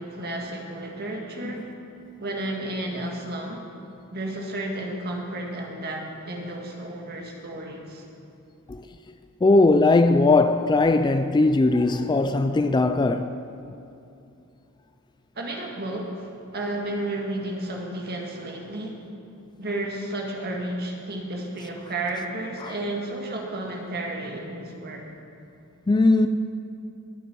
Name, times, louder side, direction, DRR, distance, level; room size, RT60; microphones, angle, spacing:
voice 1, 0.0-1.7 2.2-3.6 4.1-8.0 15.4-19.0 19.6-25.0, right 1 dB, 45° right, 1.8 m, -32 dB
voice 2, 9.4-13.3 22.6-22.7 25.9-26.3, left 2 dB, 20° left, 0.3 m, -19 dB
21.0 x 8.0 x 4.6 m
head